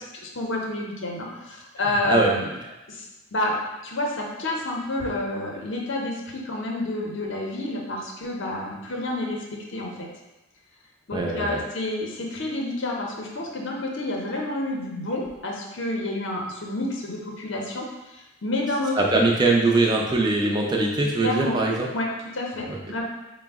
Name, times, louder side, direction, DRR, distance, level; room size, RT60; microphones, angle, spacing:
voice 1, 0.2-2.5 2.9-10.1 11.1-19.2 21.2-21.6 21.9-22.1 22.3-23.0, left 1 dB, 55° left, -1 dB, 0.6 m, -29 dB
voice 2, 1.9-2.3 11.1-11.6 19.0-21.9 22.7-22.8, right 2 dB, 20° right, -1 dB, 0.4 m, -22 dB
4.7 x 2.0 x 3.5 m, 1.0 s
head